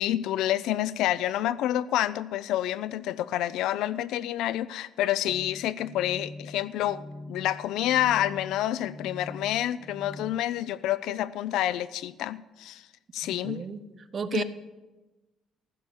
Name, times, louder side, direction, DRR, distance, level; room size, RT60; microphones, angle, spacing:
voice 1, 0.0-7.0 7.3-12.8 13.1-13.6 14.3-14.4, left 13 dB, 90° left, 17 dB, 0.4 m, -28 dB
sound 1, 5.3-10.3, left 2 dB, 5° left, 1.3 m, -43 dB
voice 2, 13.4-13.8 14.1-14.4, right 6 dB, 30° right, 11 dB, 0.7 m, -31 dB
15.0 x 6.9 x 8.1 m, 1.1 s
cardioid pair, 165°, 0 cm